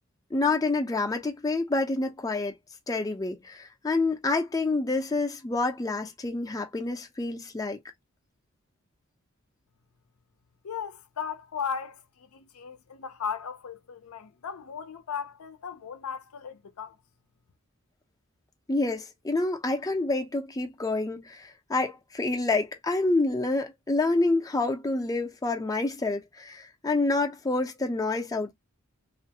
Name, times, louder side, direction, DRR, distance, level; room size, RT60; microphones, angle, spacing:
voice 1, 0.3-2.5 2.9-7.8 18.7-28.5, left 2 dB, 15° left, 0.5 m, -28 dB
voice 2, 10.6-17.0, left 7 dB, 75° left, 0.5 m, -36 dB
2.4 x 2.2 x 2.7 m
head